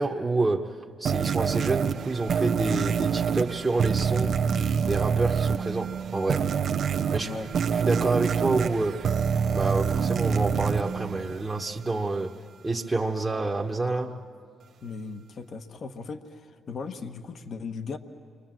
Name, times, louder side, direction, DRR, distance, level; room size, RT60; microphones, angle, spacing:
voice 1, 0.0-4.4 4.9-6.5 7.1-7.4 7.7-9.0 9.5-12.3 12.6-14.2, right 3 dB, 20° right, -3 dB, 1.2 m, -28 dB
sound 1, 1.1-11.8, right 7 dB, 60° right, 0.7 m, -26 dB
voice 2, 7.2-7.5 14.8-18.0, left 4 dB, 55° left, 7 dB, 1.3 m, -37 dB
29.5 x 24.5 x 7.6 m, 2.2 s
cardioid pair, 90°, 0 cm